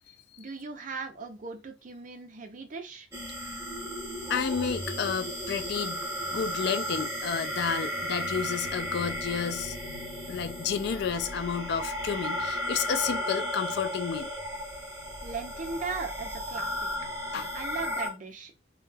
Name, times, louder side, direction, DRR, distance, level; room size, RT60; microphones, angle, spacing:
voice 1, 0.4-3.1 15.2-16.9 17.5-18.6, right 4 dB, 45° right, 0.5 m, -38 dB
sound 1, 3.1-18.1, equal, 15° right, 0.9 m, -34 dB
voice 2, 4.3-9.8 10.3-14.3 17.3-17.5, left 6 dB, 65° left, 0.3 m, -31 dB
2.2 x 2.2 x 3.2 m
head